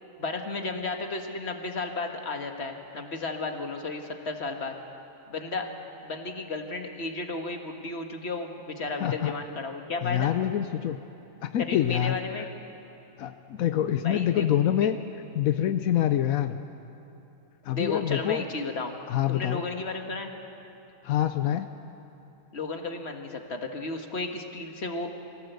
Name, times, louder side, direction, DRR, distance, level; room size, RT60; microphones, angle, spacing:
voice 1, 0.2-4.8 5.3-5.7 6.0-10.3 11.6-12.5 14.0-14.9 17.7-18.9 19.3-20.3 22.5-25.1, left 3 dB, 50° left, 4 dB, 1.9 m, -33 dB
voice 2, 9.0-9.3 10.0-11.0 11.4-12.4 13.2-15.0 15.3-16.6 17.6-18.4 19.1-19.6 21.0-21.7, left 11 dB, 85° left, 9 dB, 1.1 m, -26 dB
24.0 x 17.5 x 8.1 m, 2.9 s
omnidirectional pair, 1.4 m